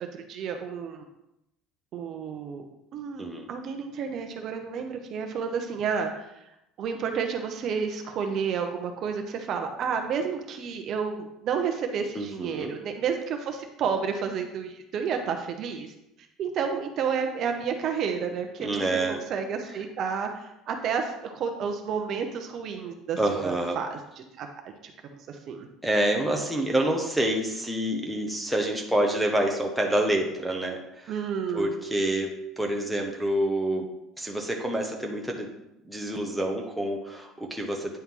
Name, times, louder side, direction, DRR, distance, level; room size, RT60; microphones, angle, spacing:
voice 1, 0.1-1.0 1.9-2.6 2.9-6.2 6.8-15.9 16.4-24.5 24.8-24.9 25.3-25.7 31.1-31.7, right 6 dB, 40° right, 5 dB, 0.8 m, -31 dB
voice 2, 12.1-12.7 18.6-19.2 23.2-23.8 25.8-31.1 31.5-32.3 32.6-33.9 34.2-35.5 35.8-38.0, right 1 dB, ahead, 0 dB, 0.8 m, -27 dB
9.4 x 4.4 x 3.7 m, 0.86 s
cardioid pair, 165°, 0 cm